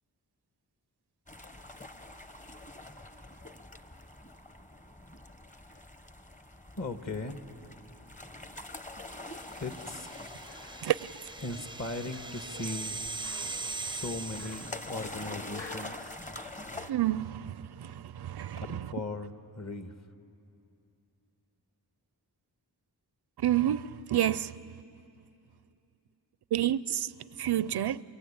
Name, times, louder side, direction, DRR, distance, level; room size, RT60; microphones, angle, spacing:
sound 1, 1.3-16.9, left 2 dB, 20° left, 1.0 m, -46 dB
voice 1, 6.8-7.4 8.6-8.7 9.6-10.1 11.4-13.0 13.8-16.2 18.7-20.0, left 2 dB, 40° left, 1.5 m, -38 dB
sound 2, 9.5-15.4, right 3 dB, 10° right, 0.5 m, -41 dB
sound 3, 10.4-15.8, left 2 dB, 65° left, 4.3 m, -49 dB
voice 2, 13.4-13.7 16.4-16.5 16.7-18.9 23.4-24.6 26.5-28.0, right 12 dB, 75° right, 0.5 m, -30 dB
29.0 x 22.5 x 8.7 m
wide cardioid pair, 60°, 40 cm